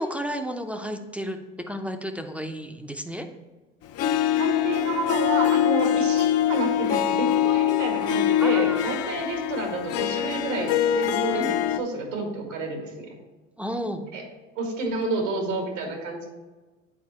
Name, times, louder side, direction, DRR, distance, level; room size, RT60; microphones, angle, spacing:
voice 1, 0.0-1.4 1.7-3.3 8.4-9.1 11.3-11.5 13.6-14.1, equal, 5° right, 5 dB, 0.6 m, -32 dB
Harp, 4.0-11.8, left 11 dB, 40° left, 0.6 m, -23 dB
voice 2, 4.3-13.1 14.1-14.2 14.6-16.3, right 2 dB, 85° right, 2 dB, 1.9 m, -30 dB
8.8 x 4.0 x 4.3 m, 1.3 s
hypercardioid pair, 85°, 37 cm